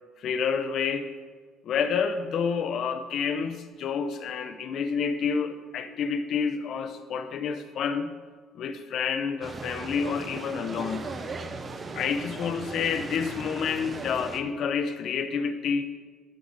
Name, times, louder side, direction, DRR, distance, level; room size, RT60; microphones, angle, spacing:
voice 1, 0.2-1.1 1.6-8.1 8.5-11.0 11.9-15.8, left 6 dB, 55° left, 9 dB, 0.7 m, -29 dB
sound 1, 9.4-14.4, right 3 dB, 30° right, 0.7 m, -38 dB
14.0 x 4.9 x 4.0 m, 1.5 s
cardioid pair, 130°, 0 cm